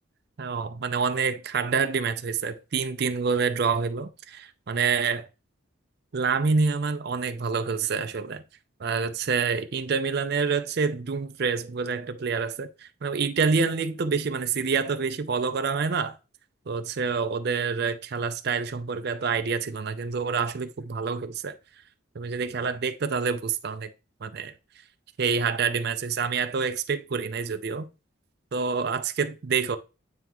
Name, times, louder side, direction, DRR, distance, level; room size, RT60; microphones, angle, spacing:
voice 1, 0.4-5.3 6.1-8.4 8.8-16.2 16.7-21.6 22.1-23.9 24.2-24.5 25.2-27.9 28.5-29.8, right 5 dB, 50° right, 0.5 m, -27 dB
9.2 x 3.4 x 3.0 m
head